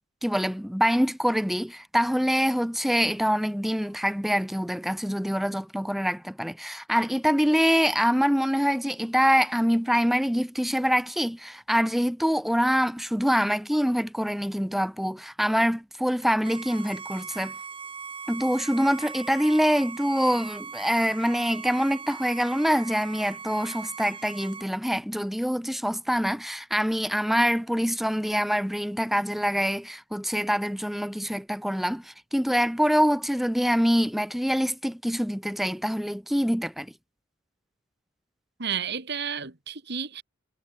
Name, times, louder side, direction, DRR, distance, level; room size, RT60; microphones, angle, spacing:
voice 1, 0.2-17.5 18.3-36.9, equal, ahead, 0.7 m, -25 dB
Bowed string instrument, 16.4-24.7, right 5 dB, 25° right, 1.2 m, -40 dB
voice 2, 38.6-40.2, right 7 dB, 55° right, 2.0 m, -32 dB
head